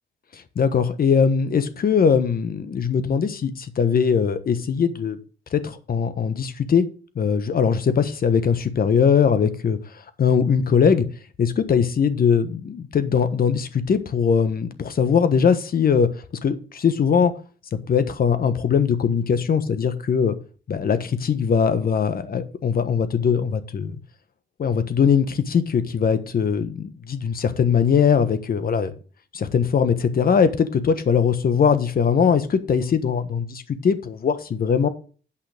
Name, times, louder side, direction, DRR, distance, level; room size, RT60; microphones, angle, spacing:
voice 1, 0.3-5.2 5.5-6.8 7.1-11.0 11.4-16.1 16.4-17.3 17.9-20.4 20.7-24.0 24.6-28.9 29.3-34.9, left 6 dB, 45° left, 1.3 m, -21 dB
8.7 x 5.7 x 6.5 m
cardioid pair, 90°, 20 cm